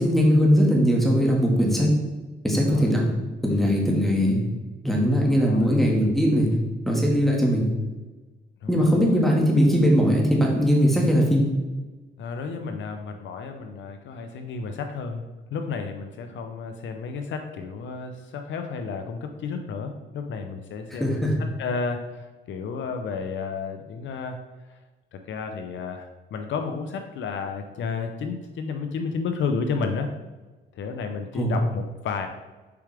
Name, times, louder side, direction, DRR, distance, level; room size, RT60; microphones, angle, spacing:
voice 1, 0.0-1.9 2.4-3.0 3.4-4.4 4.8-6.5 6.8-7.7 8.7-11.5 21.0-21.4 31.3-31.5, equal, ahead, -2 dB, 1.8 m, -20 dB
voice 2, 8.6-9.2 12.2-15.2 15.5-21.3 21.6-24.4 24.7-24.8 25.1-30.1 30.7-32.3, left 5 dB, 70° left, 6 dB, 0.7 m, -32 dB
6.9 x 4.8 x 3.4 m, 1.2 s
cardioid pair, 90°, 20 cm